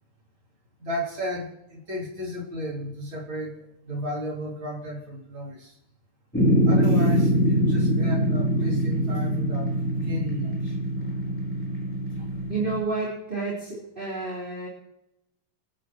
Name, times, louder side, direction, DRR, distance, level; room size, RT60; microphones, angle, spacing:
voice 1, 0.8-5.8 6.6-10.8 12.1-12.3, left 1 dB, 40° right, -4 dB, 4.5 m, -33 dB
sound 1, 6.3-12.8, equal, 5° left, 4.1 m, -23 dB
voice 2, 12.5-14.7, right 3 dB, 15° right, -5 dB, 4.0 m, -30 dB
26.5 x 10.5 x 3.2 m, 0.86 s
omnidirectional pair, 3.7 m